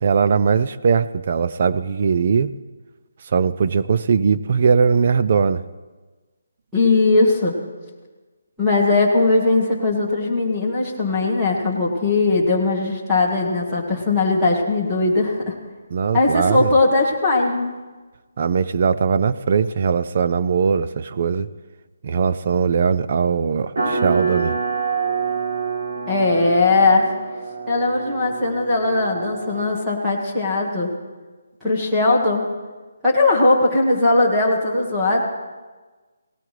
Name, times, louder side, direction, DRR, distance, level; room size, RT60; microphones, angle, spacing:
voice 1, 0.0-2.5 3.3-5.6 15.9-16.7 18.4-21.5 22.0-24.6, right 6 dB, 30° right, 13 dB, 0.3 m, -20 dB
voice 2, 6.7-7.6 8.6-15.6 16.1-17.7 26.1-27.1 27.7-30.9 31.6-32.5 33.0-35.2, left 2 dB, 5° right, -7 dB, 1.3 m, -19 dB
sound 1, 23.8-30.0, right 5 dB, 55° right, 3.1 m, -26 dB
18.0 x 18.0 x 3.3 m, 1.3 s
hypercardioid pair, 180°, 0 cm